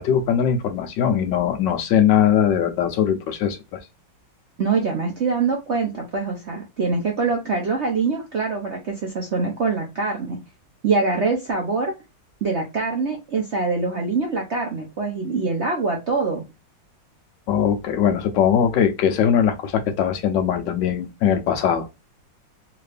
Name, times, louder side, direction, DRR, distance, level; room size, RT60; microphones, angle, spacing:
voice 1, 0.0-3.8 17.5-21.9, left 8 dB, 75° left, 1.3 m, -20 dB
voice 2, 4.6-10.4 10.8-11.9 12.4-16.4, right 4 dB, 55° right, 0.7 m, -24 dB
3.7 x 2.5 x 3.3 m
omnidirectional pair, 2.1 m